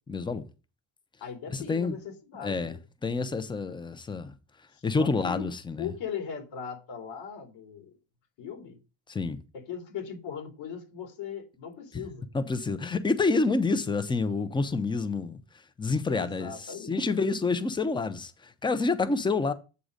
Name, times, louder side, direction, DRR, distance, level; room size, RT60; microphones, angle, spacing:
voice 1, 0.1-0.5 1.5-2.0 2.4-4.3 4.8-5.9 9.1-9.4 11.9-12.0 12.3-15.4 15.8-19.5, left 3 dB, 10° left, 0.6 m, -28 dB
voice 2, 1.2-2.8 5.0-5.4 5.8-7.9 8.4-8.8 9.5-12.2 16.1-17.0, left 7 dB, 85° left, 3.2 m, -39 dB
8.2 x 3.8 x 6.4 m
cardioid pair, 160°, 44 cm